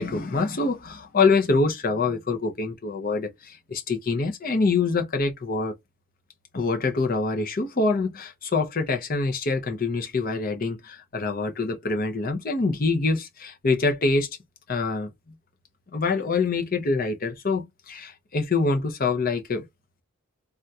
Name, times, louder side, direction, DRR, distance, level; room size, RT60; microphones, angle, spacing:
voice 1, 0.0-5.7 6.5-14.3 14.7-15.1 15.9-19.7, left 3 dB, 40° left, 0.6 m, -25 dB
3.5 x 2.2 x 2.7 m
head